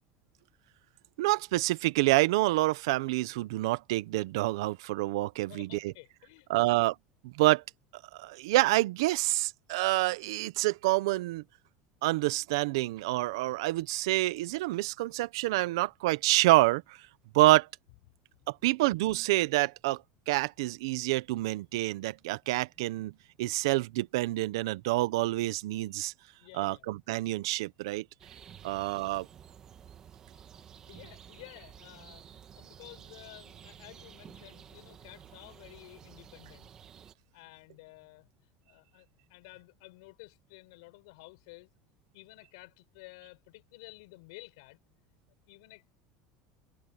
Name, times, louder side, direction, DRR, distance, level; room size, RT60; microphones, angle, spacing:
voice 1, 1.2-5.9 6.5-6.9 7.3-7.6 8.1-11.4 12.0-17.0 17.3-17.7 18.6-20.0 20.3-23.1 23.4-26.1 26.5-28.0 28.6-29.3, right 19 dB, 90° right, 0.8 m, -27 dB
voice 2, 5.5-6.9 26.4-26.9 28.6-28.8 30.3-36.7 37.3-41.7 42.1-44.8 45.5-46.0, left 24 dB, 75° left, 5.4 m, -53 dB
sound 1, 28.2-37.1, right 8 dB, 25° right, 1.5 m, -52 dB
cardioid pair, 170°, 2 cm